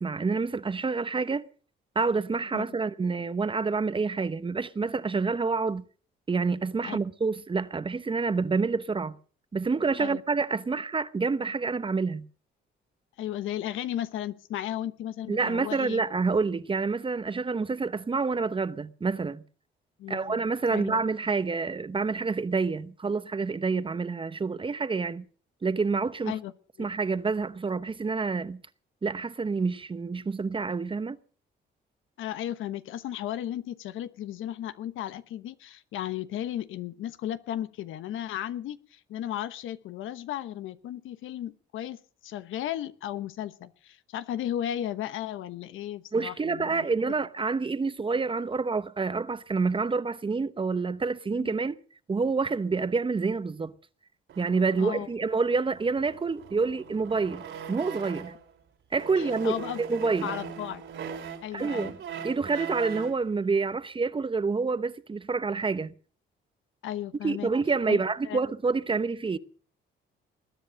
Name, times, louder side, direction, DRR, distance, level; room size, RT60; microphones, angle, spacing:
voice 1, 0.0-1.5 1.9-5.8 6.3-9.2 9.5-12.3 15.3-19.4 20.1-25.2 25.6-26.3 26.8-28.6 29.0-31.2 46.1-51.8 52.1-53.7 54.4-57.4 57.7-58.3 58.9-60.3 61.5-62.0 62.2-65.9 67.2-69.4, right 4 dB, 25° right, 0.9 m, -28 dB
voice 2, 13.2-16.0 20.0-20.4 20.7-21.0 26.2-26.5 26.8-26.9 32.2-46.9 51.4-51.5 54.8-55.1 59.2-59.8 60.2-60.8 61.4-61.9 66.8-67.5 67.9-68.4, left 11 dB, 85° left, 1.1 m, -35 dB
sound 1, 54.3-58.5 58.9-63.2, right 7 dB, 70° right, 3.4 m, -40 dB
20.5 x 10.0 x 6.3 m
cardioid pair, 90°, 20 cm